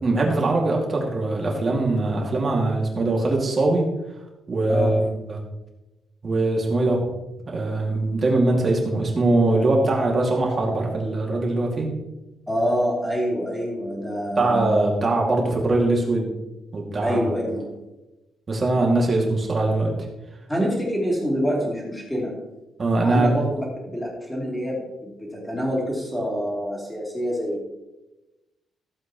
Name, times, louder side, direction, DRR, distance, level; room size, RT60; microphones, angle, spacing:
voice 1, 0.0-3.9 4.5-5.0 5.3-5.4 6.2-7.1 7.5-11.9 14.4-16.3 16.7-17.2 18.5-19.9 22.8-23.4, right 2 dB, 30° right, -1 dB, 2.2 m, -22 dB
voice 2, 12.5-14.8 17.0-17.7 20.5-22.3 23.0-27.7, equal, 5° left, -3 dB, 2.8 m, -26 dB
15.0 x 7.8 x 3.0 m, 1.0 s
cardioid pair, 165°, 0 cm